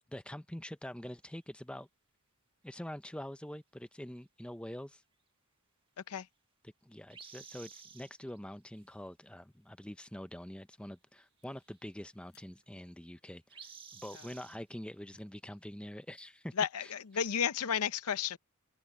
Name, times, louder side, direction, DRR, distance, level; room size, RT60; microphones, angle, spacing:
voice 1, 0.1-1.9 2.6-5.0 6.8-13.4 13.9-16.5 16.8-16.9, left 1 dB, 5° left, 0.6 m, -45 dB
sound 1, 1.0-1.4 7.1-8.4 8.7-8.8 10.9-11.0 11.2-12.0 12.5-13.0 13.5-14.6 15.2-15.5 15.8-15.9 17.1-17.4, right 6 dB, 25° right, 1.3 m, -53 dB
sound 2, 9.4-15.2, left 9 dB, 50° left, 7.7 m, -78 dB
voice 2, 16.6-18.4, left 8 dB, 90° left, 0.6 m, -32 dB
open air
head